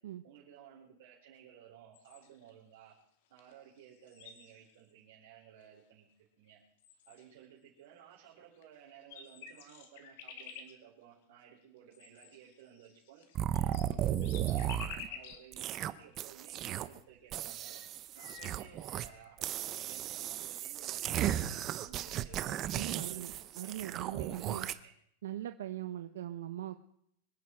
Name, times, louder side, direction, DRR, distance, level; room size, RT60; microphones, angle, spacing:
voice 1, 0.2-2.9 3.3-6.6 7.1-13.2 13.6-17.8 18.1-22.4 22.8-23.3 23.6-23.7 24.2-24.9, right 9 dB, 60° right, -5 dB, 4.7 m, -56 dB
sound 1, 1.9-2.5 3.4-3.5 3.8-4.9 5.6-5.7 6.5-6.6 6.8-7.5 8.6-8.7 8.9-10.7 11.9-15.5 16.0-16.1 17.3-17.4 17.6-19.3, left 7 dB, 55° left, 2.6 m, -50 dB
sound 2, 13.4-15.1 15.5-17.0 17.3-19.1 19.4-24.7, right 11 dB, 25° right, 0.7 m, -35 dB
voice 2, 22.7-24.7 25.2-26.8, right 12 dB, 85° right, 8 dB, 1.0 m, -41 dB
25.5 x 10.5 x 4.7 m, 0.69 s
supercardioid pair, 170°, 0 cm